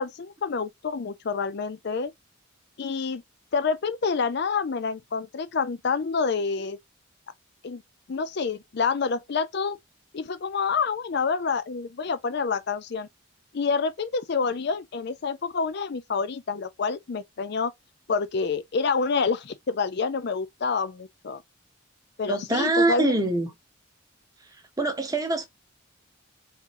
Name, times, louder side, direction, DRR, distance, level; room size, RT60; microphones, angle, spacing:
voice 1, 0.0-2.1 2.8-3.2 3.5-6.8 7.6-7.8 8.1-9.8 10.1-13.1 13.5-17.7 18.1-21.4 22.2-23.2, left 5 dB, 50° left, 0.4 m, -27 dB
voice 2, 22.3-23.5 24.8-25.5, right 2 dB, 15° right, 1.2 m, -24 dB
4.2 x 3.6 x 2.6 m
head